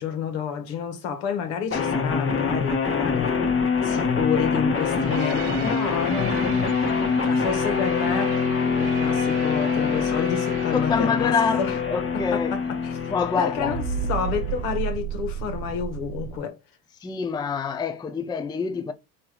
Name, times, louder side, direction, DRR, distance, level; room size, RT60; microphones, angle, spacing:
voice 1, 0.0-8.5 8.8-11.7 12.1-13.8 14.1-16.6, left 7 dB, 70° left, 1.5 m, -30 dB
sound 1, 1.7-14.7, left 5 dB, 30° left, 1.2 m, -25 dB
sound 2, 4.8-13.3 13.6-16.4, right 9 dB, 60° right, 0.8 m, -35 dB
voice 2, 10.7-12.5 13.1-13.8 17.0-18.9, left 5 dB, 10° left, 0.4 m, -26 dB
3.6 x 3.0 x 4.6 m
hypercardioid pair, 75°, 45 cm